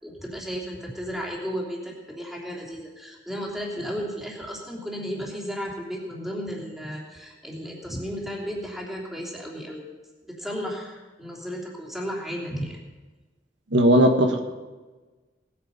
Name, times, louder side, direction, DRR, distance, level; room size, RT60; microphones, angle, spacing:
voice 1, 0.0-10.0 10.3-12.8, equal, ahead, -3 dB, 3.1 m, -34 dB
voice 2, 13.7-14.4, equal, 85° right, 4 dB, 1.4 m, -17 dB
18.5 x 9.6 x 5.6 m, 1.3 s
head